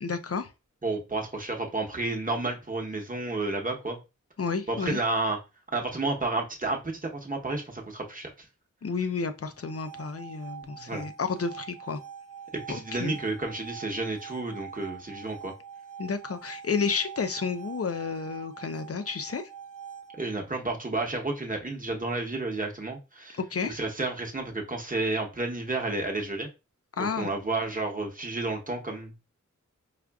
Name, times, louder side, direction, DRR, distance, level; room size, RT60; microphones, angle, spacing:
voice 1, 0.0-0.5 4.4-5.0 8.8-12.0 12.7-13.2 16.0-19.5 23.4-23.8 27.0-27.3, left 5 dB, 50° left, 0.5 m, -31 dB
voice 2, 0.8-4.0 4.7-5.4 5.7-8.5 10.6-11.0 12.5-15.5 20.2-26.5 27.0-29.2, right 2 dB, 25° right, 0.9 m, -31 dB
sound 1, 9.5-20.5, right 7 dB, 85° right, 0.5 m, -45 dB
4.9 x 2.4 x 2.3 m
wide cardioid pair, 50°, 31 cm